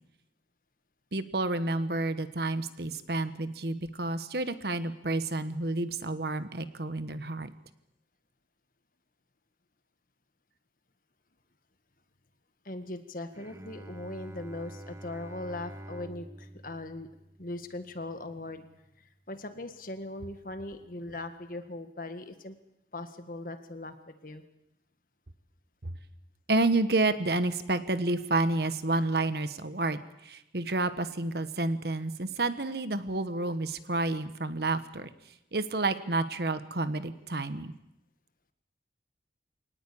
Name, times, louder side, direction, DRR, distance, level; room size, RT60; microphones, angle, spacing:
voice 1, 1.1-7.5 25.8-25.9 26.5-35.1 35.5-37.7, right 2 dB, 60° right, 11 dB, 1.3 m, -30 dB
voice 2, 12.7-17.1 17.4-18.7 19.0-22.6 22.9-24.4, left 2 dB, 50° left, 8 dB, 1.8 m, -40 dB
Bowed string instrument, 13.3-18.6, right 1 dB, 15° right, 0.8 m, -47 dB
23.5 x 19.0 x 8.6 m, 0.87 s
head